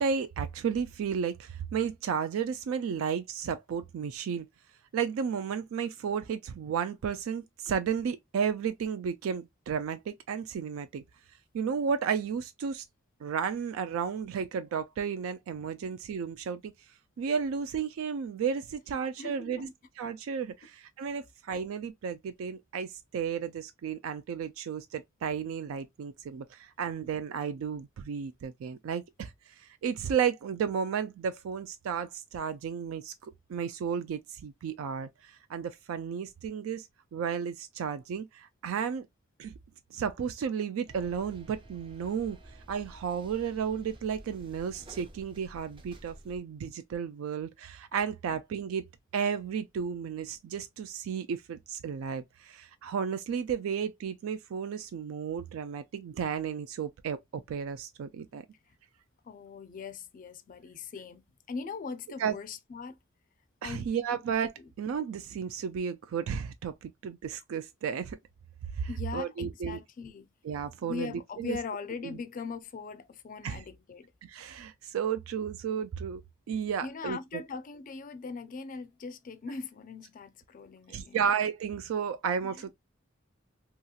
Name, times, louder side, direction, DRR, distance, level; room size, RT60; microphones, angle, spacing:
voice 1, 0.0-4.5 4.9-11.0 11.5-12.8 13.2-16.7 17.2-19.7 20.0-39.1 39.4-39.5 39.9-42.4 42.7-48.8 49.1-58.4 62.2-62.4 63.6-68.2 68.7-69.8 70.4-71.1 71.4-71.6 72.0-72.2 73.4-73.6 74.2-76.2 76.5-77.4 80.9-82.7, right 7 dB, 90° right, 0.3 m, -33 dB
voice 2, 18.9-19.7 58.7-58.8 59.2-61.2 61.5-63.0 63.6-64.2 68.9-70.3 70.8-74.1 76.8-81.3 82.4-82.6, left 5 dB, 40° left, 0.4 m, -40 dB
sound 1, 40.9-46.4, right 1 dB, 25° right, 0.5 m, -51 dB
2.8 x 2.8 x 2.3 m
head